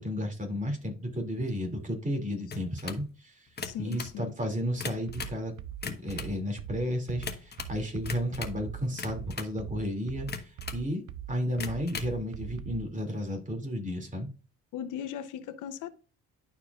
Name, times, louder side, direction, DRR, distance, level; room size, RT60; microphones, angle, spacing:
voice 1, 0.0-3.5 3.8-5.5 5.8-11.0 11.3-14.3, equal, 25° right, 2.6 m, -33 dB
sound 1, 2.5-3.1 3.5-4.2 4.6-5.4 5.7-6.4 7.2-7.8 8.0-8.6 9.0-9.6 10.3-10.9 11.5-12.2, left 5 dB, 35° left, 1.1 m, -39 dB
voice 2, 3.6-4.3 14.7-15.9, left 10 dB, 90° left, 0.8 m, -37 dB
sound 2, 5.1-12.9, right 10 dB, 90° right, 0.6 m, -41 dB
11.0 x 4.6 x 2.4 m
cardioid pair, 90°, 30 cm